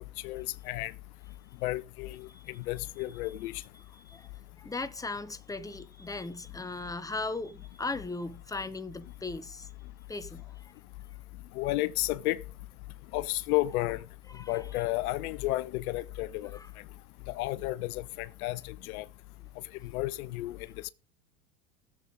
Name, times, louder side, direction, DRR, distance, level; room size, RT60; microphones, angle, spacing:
voice 1, 0.2-0.9 1.6-3.6 11.5-12.4 13.1-14.0 14.5-16.6 17.3-19.1 19.8-20.6, left 18 dB, 70° left, 0.7 m, -32 dB
voice 2, 4.6-9.7 10.1-10.7 14.3-14.7 16.5-16.7, left 3 dB, 10° left, 1.0 m, -38 dB
19.0 x 7.3 x 4.0 m
hypercardioid pair, 85°, 44 cm